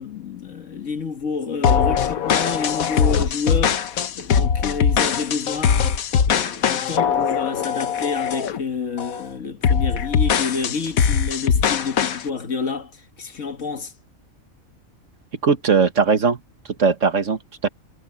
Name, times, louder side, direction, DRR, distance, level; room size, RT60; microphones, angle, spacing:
voice 1, 0.0-3.8 4.1-5.8 6.3-12.9 13.2-13.9, left 5 dB, 65° left, 1.8 m, -29 dB
sound 1, 1.6-8.6 9.0-9.2 9.6-12.2, left 7 dB, 90° left, 1.5 m, -21 dB
voice 2, 15.4-16.4 16.8-17.7, right 5 dB, 65° right, 1.8 m, -19 dB
omnidirectional pair, 1.4 m